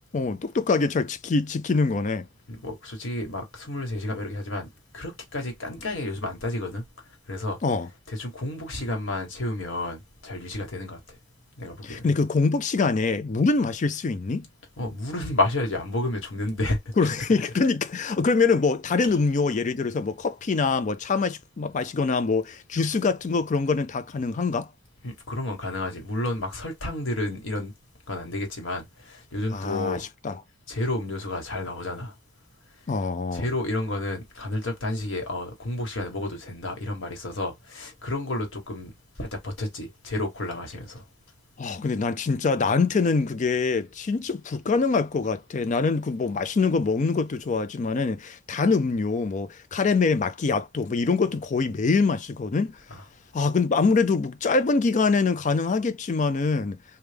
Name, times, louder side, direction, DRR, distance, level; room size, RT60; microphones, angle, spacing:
voice 1, 0.1-2.3 7.6-7.9 11.8-14.4 17.0-24.7 29.5-30.4 32.9-33.5 41.6-52.8 53.3-56.8, left 4 dB, 40° left, 0.4 m, -24 dB
voice 2, 2.5-6.8 7.3-7.6 8.1-11.2 11.6-12.1 14.8-17.3 25.0-27.7 28.1-30.0 30.7-32.1 33.3-38.9 39.2-41.0 52.9-53.0, left 2 dB, 85° left, 1.3 m, -31 dB
3.3 x 2.2 x 3.3 m
head